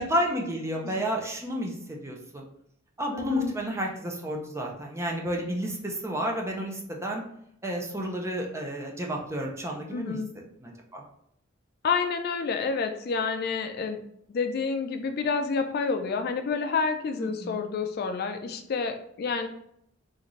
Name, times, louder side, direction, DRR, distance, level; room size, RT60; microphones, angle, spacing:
voice 1, 0.0-2.4 3.0-7.2 7.6-10.2 10.6-11.0 17.2-17.6, equal, 15° right, 0 dB, 0.5 m, -31 dB
voice 2, 3.1-3.6 9.9-10.3 11.8-14.0 14.3-19.5, left 5 dB, 50° left, 7 dB, 0.3 m, -29 dB
3.8 x 2.5 x 3.0 m, 0.70 s
head